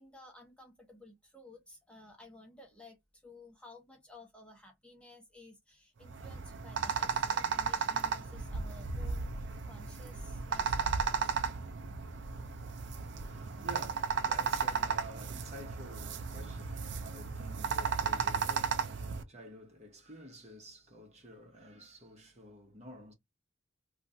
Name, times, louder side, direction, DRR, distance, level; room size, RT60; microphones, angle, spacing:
voice 1, 0.0-11.3, left 2 dB, 5° left, 0.8 m, -55 dB
sound 1, 6.0-19.2, right 5 dB, 60° right, 0.5 m, -34 dB
voice 2, 12.1-23.1, right 1 dB, 35° right, 1.0 m, -51 dB
3.0 x 2.4 x 2.6 m
head